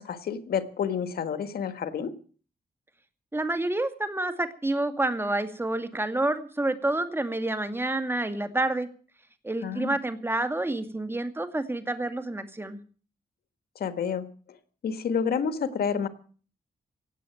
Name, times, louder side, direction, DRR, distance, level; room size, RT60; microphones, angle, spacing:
voice 1, 0.0-2.1 9.6-10.0 13.7-14.3 14.8-16.1, left 7 dB, 90° left, 11 dB, 1.6 m, -29 dB
voice 2, 3.3-8.9 9.4-12.8, right 2 dB, 15° right, 9 dB, 2.1 m, -28 dB
17.5 x 7.6 x 9.1 m, 0.41 s
cardioid pair, 75°, 16 cm